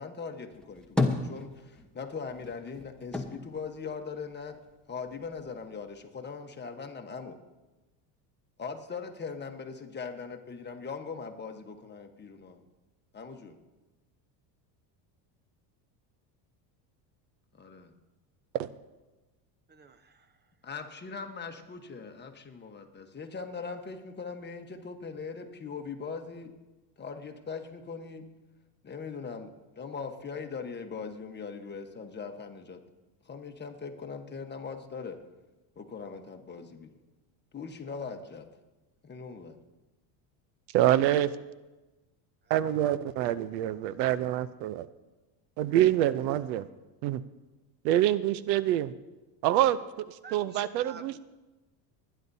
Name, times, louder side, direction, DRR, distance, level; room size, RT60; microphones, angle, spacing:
voice 1, 0.0-4.6 4.9-7.4 8.6-12.6 13.1-13.6 17.5-17.9 20.6-26.5 27.0-28.3 28.8-29.5 29.8-32.8 33.3-35.2 35.8-36.9 37.5-38.5 39.0-39.6, left 5 dB, 20° left, 5 dB, 1.2 m, -40 dB
sound 1, 0.5-2.0 2.3-4.7 5.1-6.0, left 2 dB, ahead, 1.1 m, -33 dB
voice 2, 19.7-20.4 50.2-51.2, right 5 dB, 20° right, 11 dB, 0.7 m, -49 dB
voice 3, 40.7-41.3 42.5-44.9 45.6-46.7 47.0-47.2 47.8-48.9 49.4-51.2, right 12 dB, 90° right, 16 dB, 0.7 m, -26 dB
23.5 x 10.0 x 2.7 m, 1.1 s
supercardioid pair, 115°, 49 cm